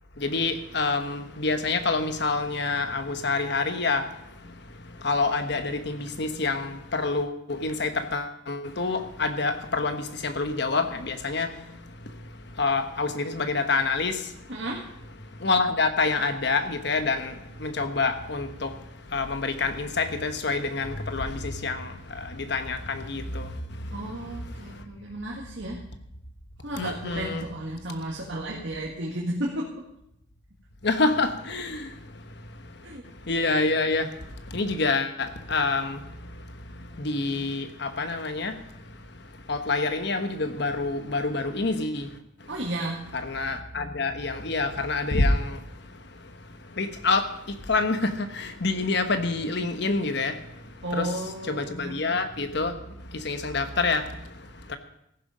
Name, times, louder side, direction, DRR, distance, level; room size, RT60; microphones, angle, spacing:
voice 1, 0.2-4.1 4.4-12.1 12.5-14.3 15.4-24.8 26.8-27.4 30.8-31.9 32.6-32.7 33.2-36.3 36.7-38.6 39.5-42.1 43.1-45.7 46.7-50.6 50.9-51.1 51.5-54.3 54.7-54.8, left 3 dB, 60° left, 1.2 m, -27 dB
voice 2, 14.5-14.8 23.9-25.8 26.6-29.9 32.8-33.0 42.5-43.0 50.8-52.0, right 1 dB, 60° right, 2.0 m, -33 dB
15.0 x 11.0 x 5.1 m
head